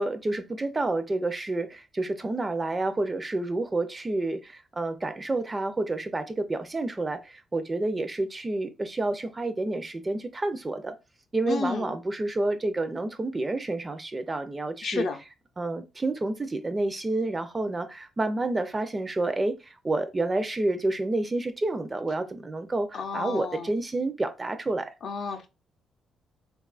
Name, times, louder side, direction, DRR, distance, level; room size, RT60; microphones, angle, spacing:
voice 1, 0.0-10.9 11.3-15.1 15.6-24.9, right 2 dB, 25° right, 0.4 m, -29 dB
voice 2, 11.5-11.9 14.8-15.2 22.9-23.7 25.0-25.5, left 4 dB, 60° left, 0.5 m, -31 dB
3.4 x 2.3 x 2.3 m
cardioid pair, 90°, 0 cm